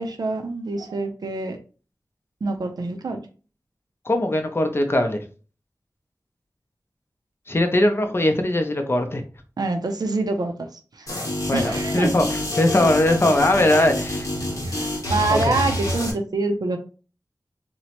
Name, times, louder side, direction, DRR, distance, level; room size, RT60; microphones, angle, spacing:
voice 1, 0.0-1.6 2.4-3.2 9.6-10.5 10.9-11.1 11.5-12.2 14.6-16.8, right 3 dB, 80° right, 6 dB, 0.4 m, -26 dB
voice 2, 4.1-5.2 7.5-9.2 11.5-12.2 12.6-14.3 15.3-15.6, left 1 dB, 35° left, 5 dB, 0.5 m, -20 dB
sound 1, 11.1-16.1, left 1 dB, 55° left, 0.9 m, -27 dB
2.9 x 2.1 x 2.8 m, 0.37 s
wide cardioid pair, 70°, 7 cm